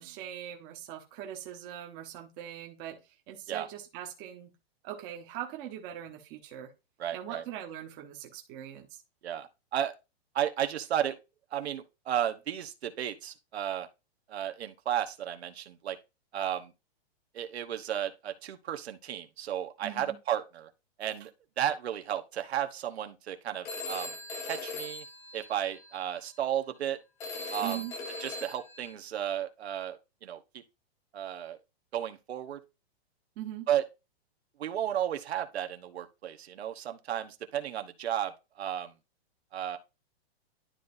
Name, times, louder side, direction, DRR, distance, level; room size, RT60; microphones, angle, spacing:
voice 1, 0.0-3.0 3.3-4.5 4.8-6.7 7.1-9.0 19.8-20.2 27.6-27.9 33.4-33.7, right 11 dB, 25° right, 1.2 m, -41 dB
voice 2, 7.0-7.4 9.2-9.9 10.3-11.2 11.5-13.9 14.3-16.0 16.3-16.7 17.3-20.7 21.0-21.3 21.6-24.1 24.4-25.0 25.3-27.0 27.5-27.8 28.2-30.6 31.1-31.6 31.9-32.6 33.7-33.8 34.6-38.9 39.5-39.8, right 10 dB, 75° right, 1.2 m, -33 dB
Telephone, 23.6-26.0 27.2-28.9, left 3 dB, 10° left, 0.5 m, -40 dB
11.5 x 3.9 x 2.6 m
hypercardioid pair, 165°, 32 cm